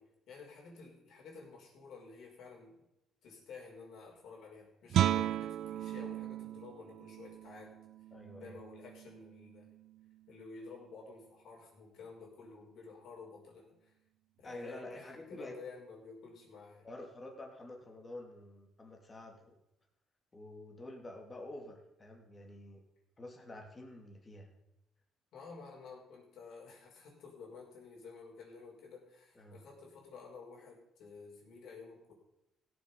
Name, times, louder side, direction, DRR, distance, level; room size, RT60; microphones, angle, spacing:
voice 1, 0.0-2.8 3.2-7.8 8.4-9.7 10.3-14.0 14.4-16.9 25.3-32.1, left 4 dB, 65° left, -2 dB, 5.3 m, -52 dB
Guitar, 4.9-10.5, right 11 dB, 65° right, 0.4 m, -36 dB
voice 2, 8.1-8.6 14.4-15.5 16.8-19.5 20.3-22.8 23.2-24.5 29.3-29.6, left 1 dB, 25° left, 2 dB, 2.8 m, -48 dB
16.5 x 7.5 x 5.6 m, 0.89 s
cardioid pair, 105°, 0 cm